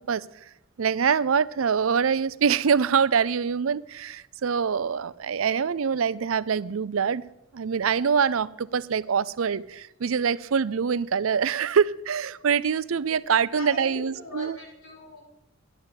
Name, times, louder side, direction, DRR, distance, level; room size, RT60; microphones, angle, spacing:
voice 1, 0.1-0.5 0.8-7.2 7.5-14.6, right 6 dB, 85° right, 0.5 m, -24 dB
voice 2, 13.3-15.2, left 2 dB, 85° left, 6.4 m, -41 dB
11.0 x 11.0 x 7.7 m
head